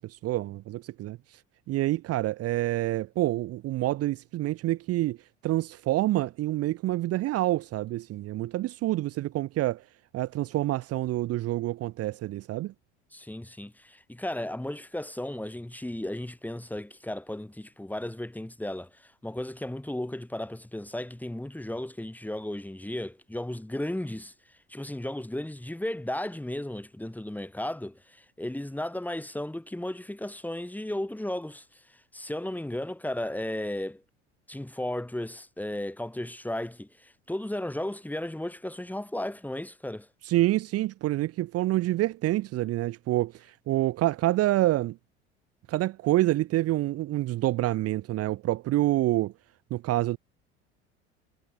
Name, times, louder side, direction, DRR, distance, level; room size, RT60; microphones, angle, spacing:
voice 1, 0.0-1.4 1.7-5.2 5.4-9.8 10.1-12.7 40.2-45.0 45.7-49.3 49.7-50.2, right 16 dB, 45° right, 0.8 m, -27 dB
voice 2, 13.1-24.3 24.7-31.7 32.1-34.0 34.5-40.1, left 1 dB, 5° left, 3.6 m, -35 dB
hypercardioid pair, 70°, 34 cm